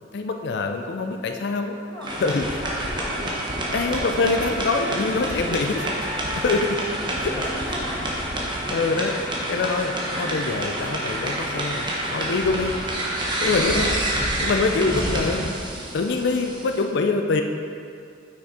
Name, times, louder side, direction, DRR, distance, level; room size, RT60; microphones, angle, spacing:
voice 1, 0.1-1.8 2.2-2.5 3.7-5.8 6.4-6.8 8.7-9.1 9.5-12.7 13.4-13.9 14.4-17.4, left 3 dB, 60° left, 5 dB, 0.4 m, -24 dB
voice 2, 1.8-5.6 6.7-8.1 8.4-8.6 13.3-14.1, equal, 15° left, -6 dB, 1.2 m, -38 dB
sound 1, 2.0-16.8, right 1 dB, 25° right, 1.1 m, -28 dB
sound 2, 2.4-8.6, right 1 dB, 70° right, 0.9 m, -36 dB
6.2 x 5.9 x 4.2 m, 2.4 s
head